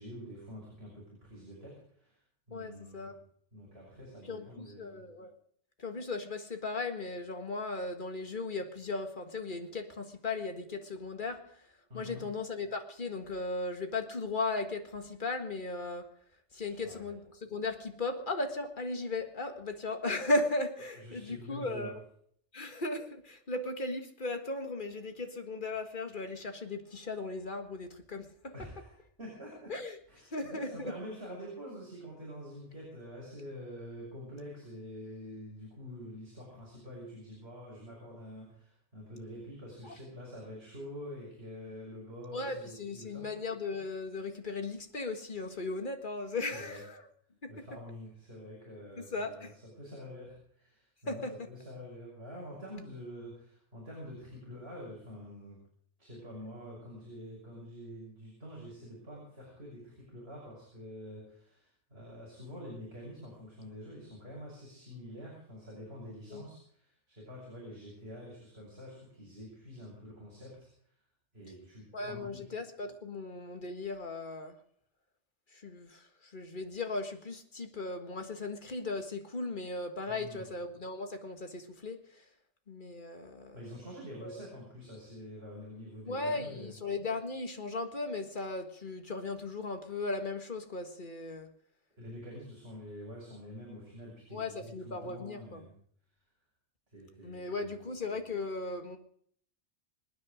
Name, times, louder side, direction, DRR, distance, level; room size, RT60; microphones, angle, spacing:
voice 1, 0.0-2.2 2.5-3.2 3.5-5.0 11.9-12.2 16.5-17.0 20.9-21.9 28.5-29.7 30.1-43.3 46.5-46.8 47.5-49.5 49.8-55.6 56.0-70.7 71.3-72.5 80.1-80.5 83.5-86.7 92.0-95.7 96.9-97.8, equal, 60° right, -4 dB, 6.5 m, -47 dB
voice 2, 2.5-3.1 4.3-5.3 5.8-11.6 11.9-16.1 16.5-22.0 22.5-28.5 29.7-30.0 30.3-30.9 39.8-39.9 42.3-47.1 47.4-47.5 49.1-49.5 51.1-51.4 66.3-66.4 71.9-74.6 75.5-82.2 82.7-83.6 84.2-84.4 86.1-91.5 94.3-95.7 97.2-99.0, left 3 dB, 45° left, 6 dB, 1.9 m, -37 dB
26.0 x 9.6 x 5.1 m, 0.62 s
omnidirectional pair, 1.2 m